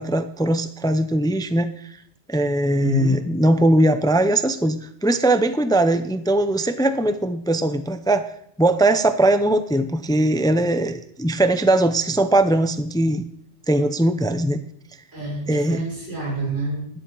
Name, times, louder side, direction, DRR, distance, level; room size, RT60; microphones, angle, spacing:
voice 1, 0.0-2.0 2.3-8.3 8.6-13.3 13.7-14.6 15.5-15.8, right 1 dB, 5° left, 10 dB, 0.3 m, -20 dB
voice 2, 2.8-3.2 15.1-16.9, right 2 dB, 90° right, -5 dB, 6.0 m, -27 dB
12.5 x 10.5 x 3.8 m, 0.73 s
omnidirectional pair, 1.2 m